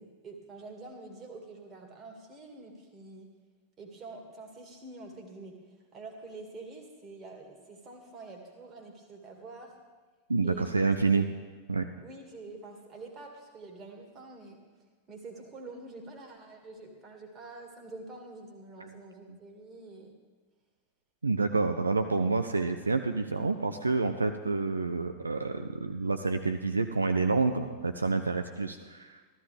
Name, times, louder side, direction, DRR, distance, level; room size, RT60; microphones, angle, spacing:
voice 1, 0.0-3.3 3.8-5.6 5.9-9.8 10.4-10.7 12.0-14.6 15.1-20.1, right 3 dB, 25° right, 2 dB, 2.1 m, -46 dB
voice 2, 10.3-11.3 11.7-11.8 18.8-18.9 19.3-19.4 21.2-29.4, right 3 dB, 80° right, 7 dB, 0.5 m, -28 dB
14.5 x 13.0 x 3.4 m, 1.4 s
figure-of-eight pair, 90°, 0 cm